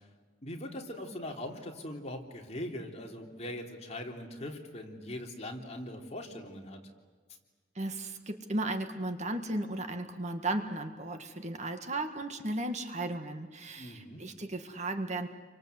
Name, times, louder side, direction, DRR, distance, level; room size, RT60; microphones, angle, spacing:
voice 1, 0.4-6.8 13.8-14.2, left 1 dB, 35° left, 1 dB, 3.4 m, -41 dB
voice 2, 7.8-15.3, right 2 dB, 40° right, 6 dB, 1.8 m, -35 dB
29.5 x 24.5 x 8.0 m, 1.5 s
head